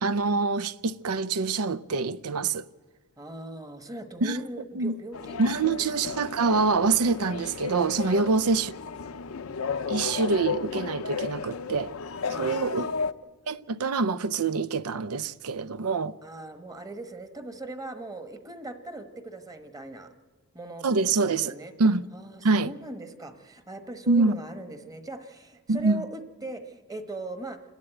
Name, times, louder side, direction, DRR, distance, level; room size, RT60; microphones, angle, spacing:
voice 1, 0.0-2.6 4.2-4.4 4.7-4.9 5.4-8.7 9.9-11.9 12.4-12.9 13.5-16.2 20.8-21.5 21.8-22.1 22.4-22.7 24.1-24.4 25.7-26.0, right 4 dB, 85° right, 0.6 m, -25 dB
voice 2, 3.2-5.7 8.0-8.2 12.3-13.0 16.2-20.1 20.5-21.7 22.1-27.6, right 2 dB, 15° right, 1.1 m, -40 dB
sound 1, 5.1-13.1, left 5 dB, 70° left, 0.6 m, -34 dB
28.5 x 13.0 x 8.9 m
head